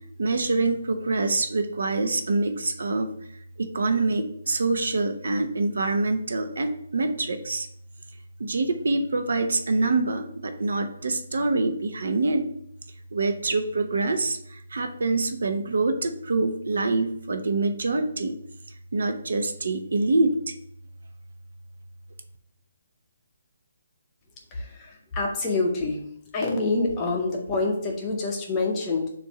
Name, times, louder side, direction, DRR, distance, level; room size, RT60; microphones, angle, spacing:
voice 1, 0.2-3.1 3.6-7.7 8.4-12.4 13.1-18.4 18.9-20.5, right 3 dB, 65° right, 8 dB, 0.8 m, -25 dB
voice 2, 24.5-26.1 26.3-29.1, left 3 dB, 15° left, -1 dB, 0.6 m, -26 dB
7.0 x 2.6 x 5.6 m, 0.70 s
hypercardioid pair, 180°, 0 cm